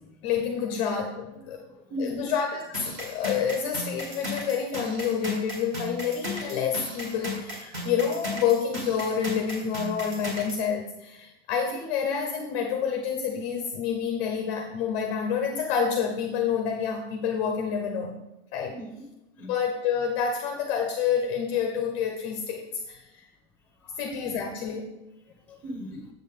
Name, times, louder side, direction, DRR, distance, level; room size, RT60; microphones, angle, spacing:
voice 1, 0.2-1.6 2.0-18.2 18.5-18.7 19.5-23.3 24.0-25.0, left 7 dB, 30° left, 3 dB, 0.6 m, -28 dB
voice 2, 1.4-2.3 18.7-19.1 19.4-19.5 23.8-24.0 25.3-26.1, equal, 5° left, 4 dB, 1.0 m, -38 dB
sound 1, 2.7-10.6, left 1 dB, 35° right, 1.9 m, -35 dB
8.0 x 6.5 x 3.6 m, 0.95 s
supercardioid pair, 180°, 34 cm